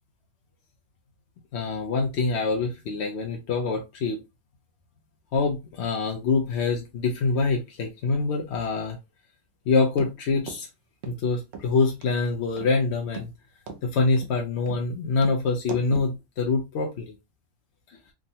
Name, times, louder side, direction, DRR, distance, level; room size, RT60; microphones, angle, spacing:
voice 1, 1.5-4.2 5.3-9.0 9.7-10.7 11.0-13.3 13.8-17.2 17.9-18.0, left 4 dB, 65° left, 1 dB, 0.8 m, -25 dB
sound 1, 10.0-10.1 10.5-10.6 11.0-11.2 11.5-11.7 12.0-12.1 12.6-12.7 13.1-13.3 13.7-13.8 14.2-14.3 14.7-14.8 15.2-15.4 15.7-16.1, right 5 dB, 65° right, 0.9 m, -38 dB
3.5 x 2.1 x 2.7 m, 0.23 s
omnidirectional pair, 1.3 m